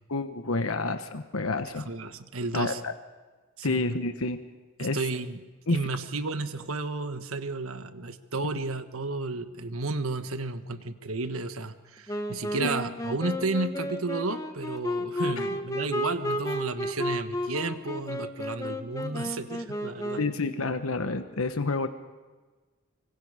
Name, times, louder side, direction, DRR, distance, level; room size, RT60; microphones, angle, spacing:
voice 1, 0.1-1.9 2.5-2.9 3.6-4.4 4.8-5.0 5.7-5.8 12.6-12.7 15.4-15.5 20.2-21.9, left 3 dB, 80° left, 8 dB, 1.2 m, -29 dB
voice 2, 1.8-2.8 3.6-3.8 4.8-5.4 5.7-20.2, right 3 dB, 80° right, 9 dB, 1.4 m, -32 dB
Wind instrument woodwind instrument, 12.1-20.5, left 1 dB, 15° left, 1.3 m, -33 dB
25.5 x 24.5 x 5.0 m, 1.3 s
head